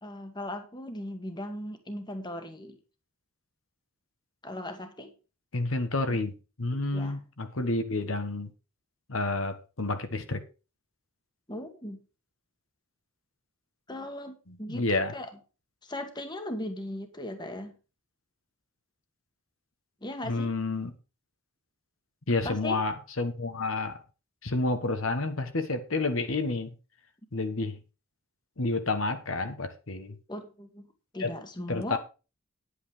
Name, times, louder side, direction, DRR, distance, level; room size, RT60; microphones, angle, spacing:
voice 1, 0.0-2.8 4.4-5.1 6.9-7.2 11.5-12.0 13.9-15.3 15.8-17.7 20.0-20.5 22.4-22.8 30.3-32.0, left 1 dB, 20° left, 1.5 m, -38 dB
voice 2, 5.5-6.3 6.6-8.5 9.1-10.4 14.5-15.1 20.2-20.9 22.3-24.0 24.4-26.7 27.3-27.8 28.6-30.2 31.2-31.3 31.7-32.0, left 2 dB, 70° left, 1.3 m, -29 dB
10.0 x 8.4 x 5.0 m
head